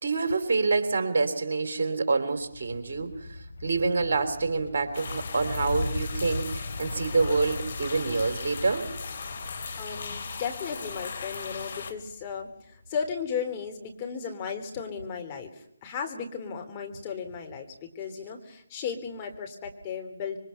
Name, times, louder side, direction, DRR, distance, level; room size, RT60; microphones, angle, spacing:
voice 1, 0.0-8.9, right 3 dB, 50° right, 8 dB, 3.6 m, -27 dB
sound 1, 2.4-13.0, left 2 dB, 70° left, 2.7 m, -39 dB
sound 2, 4.9-11.9, left 5 dB, 50° left, 2.9 m, -38 dB
voice 2, 9.8-20.4, left 6 dB, 25° left, 3 dB, 3.4 m, -35 dB
26.0 x 24.5 x 5.8 m, 0.71 s
figure-of-eight pair, 145°, 0 cm